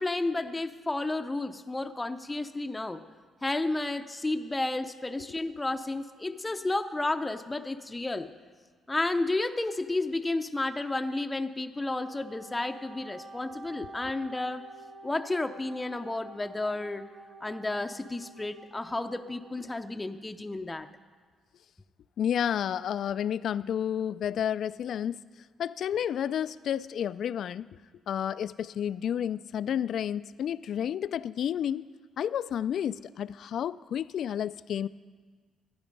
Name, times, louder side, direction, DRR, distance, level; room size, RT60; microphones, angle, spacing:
voice 1, 0.0-3.0 3.4-8.3 8.9-14.6 15.0-17.0 17.4-20.9, left 2 dB, 15° left, 7 dB, 0.6 m, -32 dB
Wind instrument woodwind instrument, 11.7-19.8, right 2 dB, 70° right, 1.8 m, -49 dB
voice 2, 22.2-25.2 25.6-27.7 28.1-31.8 32.2-34.9, left 9 dB, 65° left, 17 dB, 0.3 m, -31 dB
14.0 x 9.7 x 5.3 m, 1.5 s
cardioid pair, 90°, 0 cm